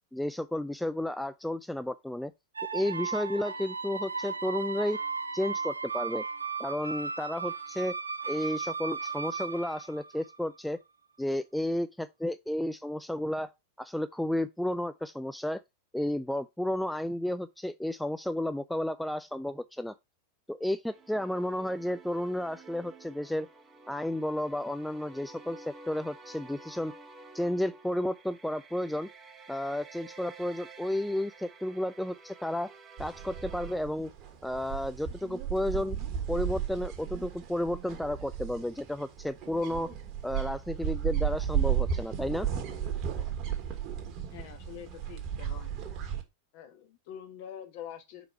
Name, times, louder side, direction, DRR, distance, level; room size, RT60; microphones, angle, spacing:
voice 1, 0.1-2.3 2.7-5.0 5.3-6.2 6.6-8.0 8.3-10.8 11.2-13.5 13.8-15.6 15.9-19.9 20.5-23.5 23.9-26.9 27.3-29.1 29.5-32.7 33.0-34.1 34.4-36.0 36.3-39.9 40.2-42.5, left 1 dB, ahead, 0.3 m, -32 dB
sound 1, 2.6-10.5, right 5 dB, 80° right, 0.5 m, -36 dB
sound 2, 20.9-33.8, right 3 dB, 20° right, 0.9 m, -51 dB
sound 3, 33.0-46.2, right 9 dB, 35° right, 1.3 m, -34 dB
voice 2, 44.3-45.7 46.5-48.3, left 9 dB, 45° left, 1.2 m, -45 dB
4.9 x 4.6 x 4.3 m
figure-of-eight pair, 90°, 0 cm